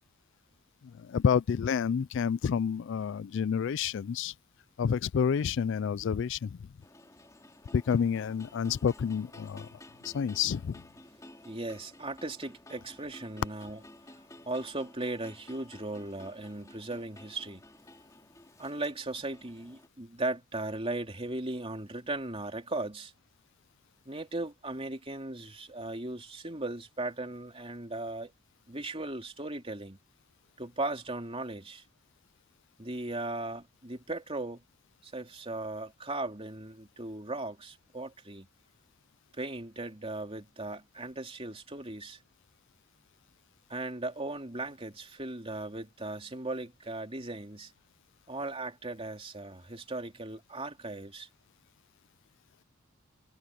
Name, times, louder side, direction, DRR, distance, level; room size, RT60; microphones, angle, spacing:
voice 1, 0.9-4.3 4.8-6.6 7.7-9.7 10.0-10.8, left 7 dB, 55° left, 0.3 m, -29 dB
sound 1, 6.8-19.9, left 1 dB, 15° left, 3.6 m, -53 dB
voice 2, 11.4-13.8 14.4-17.6 18.6-23.1 24.0-28.3 28.7-30.0 30.6-31.8 32.8-34.6 35.0-38.5 39.4-42.2 43.7-47.7 48.3-51.3, right 2 dB, 25° right, 3.2 m, -37 dB
head